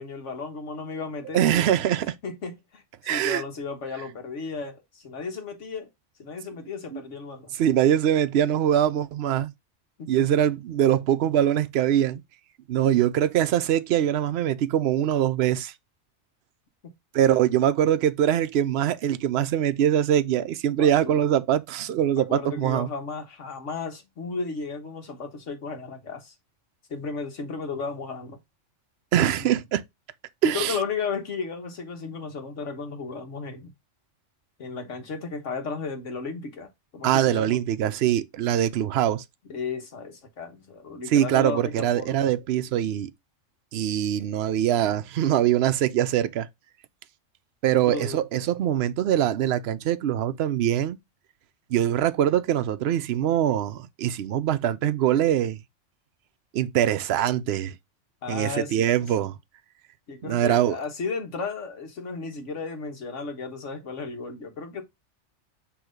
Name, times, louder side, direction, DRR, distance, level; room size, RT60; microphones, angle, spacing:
voice 1, 0.0-1.8 2.2-5.9 6.2-7.5 10.0-10.2 20.8-21.2 22.1-26.3 26.9-28.4 29.4-29.6 30.4-33.7 34.6-37.6 39.5-42.2 47.7-48.2 58.2-59.3 60.1-64.8, left 4 dB, 70° left, 1.7 m, -34 dB
voice 2, 1.3-2.1 3.0-3.4 6.9-7.0 7.6-9.5 10.1-12.2 12.7-15.7 17.1-22.9 29.1-29.8 30.4-30.8 37.0-39.2 41.1-43.1 43.7-46.5 47.6-51.0 51.7-55.6 56.5-57.8 58.3-59.3 60.2-60.8, right 11 dB, 65° right, 0.8 m, -23 dB
6.2 x 3.1 x 5.0 m
omnidirectional pair, 1.3 m